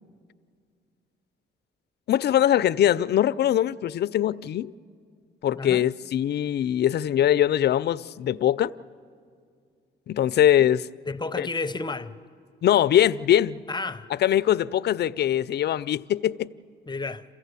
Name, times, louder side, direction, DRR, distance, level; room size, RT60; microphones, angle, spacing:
voice 1, 2.1-4.7 5.4-8.7 10.1-10.9 11.4-11.5 12.6-13.6 14.2-16.5, left 11 dB, 55° left, 0.5 m, -22 dB
voice 2, 5.6-5.9 11.1-12.2 13.7-14.1 16.9-17.2, left 3 dB, 20° left, 0.7 m, -31 dB
28.0 x 15.5 x 8.3 m
cardioid pair, 90°, 20 cm